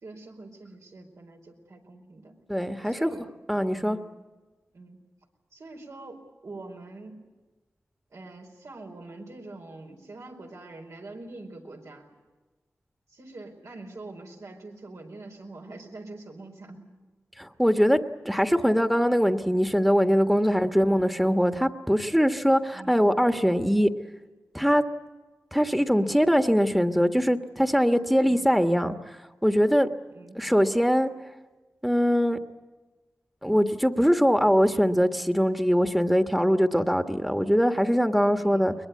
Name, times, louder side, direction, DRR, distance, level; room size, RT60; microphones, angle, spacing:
voice 1, 0.0-2.3 2.8-3.3 3.7-4.2 4.7-5.0 5.5-7.2 8.1-12.1 13.1-16.9 20.5-20.7 21.3-21.6 22.7-23.0 28.2-28.5 30.1-30.4 38.4-38.8, right 2 dB, 85° right, 1 dB, 4.7 m, -44 dB
voice 2, 2.5-3.1 3.5-4.0 17.4-18.0 18.2-23.9 24.5-24.8 25.5-29.2 29.4-29.9 30.3-31.1 31.8-32.4 33.4-38.7, equal, ahead, 7 dB, 1.4 m, -22 dB
22.5 x 21.5 x 9.5 m, 1.3 s
cardioid pair, 50°, 5 cm